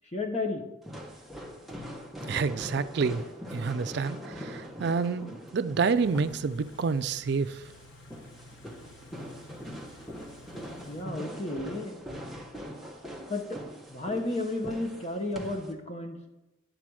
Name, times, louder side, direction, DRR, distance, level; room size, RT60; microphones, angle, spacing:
voice 1, 0.1-0.6 10.9-12.0 13.3-13.6 13.9-16.2, left 2 dB, 35° left, 4 dB, 1.0 m, -32 dB
sound 1, 0.8-15.7, equal, ahead, 0.8 m, -42 dB
voice 2, 2.3-3.2 3.5-7.6, right 5 dB, 55° right, 12 dB, 0.4 m, -28 dB
Car / Idling, 5.9-11.1, left 1 dB, 60° left, 0.9 m, -52 dB
10.0 x 4.2 x 6.1 m, 0.99 s
head